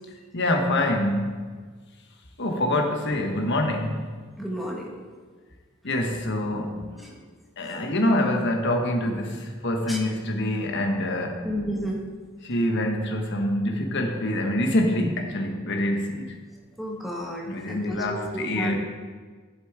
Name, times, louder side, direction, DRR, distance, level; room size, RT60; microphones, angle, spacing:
voice 1, 0.3-1.5 2.4-4.2 5.8-7.1 7.6-11.5 12.4-16.3 17.4-18.7, left 1 dB, 60° left, 3 dB, 1.3 m, -25 dB
voice 2, 4.4-5.0 9.9-10.0 11.4-12.0 16.8-18.7, equal, ahead, -2 dB, 1.5 m, -32 dB
11.5 x 7.3 x 4.7 m, 1.5 s
head